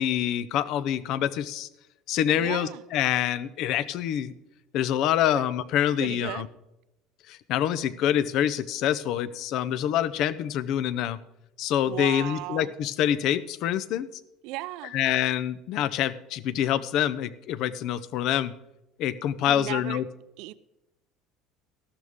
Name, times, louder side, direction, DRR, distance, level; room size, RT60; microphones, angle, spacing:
voice 1, 0.0-1.7 2.1-4.3 4.7-6.5 7.3-11.2 11.6-14.1 14.9-18.5 19.0-20.0, left 10 dB, 50° left, 0.5 m, -26 dB
voice 2, 2.4-2.8 5.3-5.4 6.0-6.4 11.8-12.7 14.4-15.0 19.4-20.0 20.4-20.5, right 16 dB, 60° right, 0.4 m, -35 dB
13.5 x 12.5 x 3.6 m
cardioid pair, 170°, 0 cm